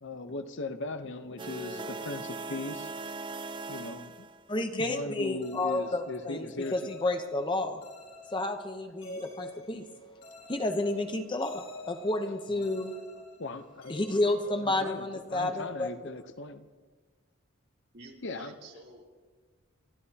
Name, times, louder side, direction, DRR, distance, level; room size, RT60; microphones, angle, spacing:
voice 1, 0.0-2.9 3.7-4.3 4.5-6.9 12.5-12.7 13.4-14.1 14.6-16.7 18.2-18.5, left 2 dB, 60° left, 9 dB, 0.8 m, -38 dB
sound 1, 1.4-4.6, right 3 dB, 25° right, 0.4 m, -39 dB
voice 2, 4.5-7.8 8.3-9.8 10.5-13.0 13.9-15.9, left 2 dB, 25° left, 6 dB, 0.8 m, -31 dB
sound 2, 5.4-15.2, left 1 dB, 80° left, 2.7 m, -48 dB
voice 3, 17.9-19.1, right 2 dB, 55° right, -3 dB, 3.6 m, -49 dB
29.5 x 13.5 x 2.9 m, 1.4 s
head